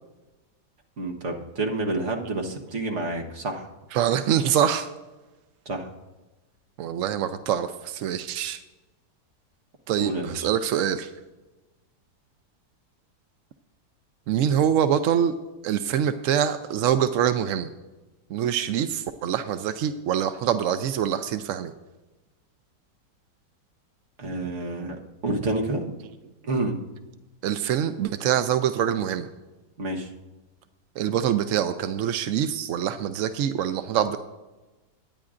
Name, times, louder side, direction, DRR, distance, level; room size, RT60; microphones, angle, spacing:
voice 1, 1.0-3.7 5.6-5.9 10.0-10.5 24.2-25.0 25.2-25.8 26.4-26.8 29.8-30.1, right 2 dB, 45° right, 1 dB, 1.5 m, -29 dB
voice 2, 3.9-4.9 6.8-8.6 9.9-11.1 14.3-15.3 15.6-17.7 18.3-21.7 27.4-29.3 31.0-34.2, right 9 dB, 70° right, 10 dB, 0.7 m, -25 dB
21.5 x 9.5 x 2.5 m, 1.1 s
omnidirectional pair, 1.8 m